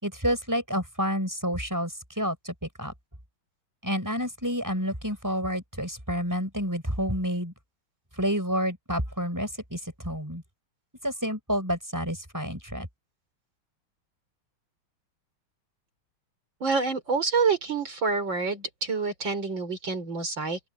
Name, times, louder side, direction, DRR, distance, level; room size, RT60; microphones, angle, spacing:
voice 1, 0.0-2.9 3.8-7.5 8.2-10.4 11.0-12.9, equal, 10° right, 5.4 m, -29 dB
voice 2, 16.6-20.6, right 4 dB, 60° right, 5.4 m, -27 dB
open air
omnidirectional pair, 2.4 m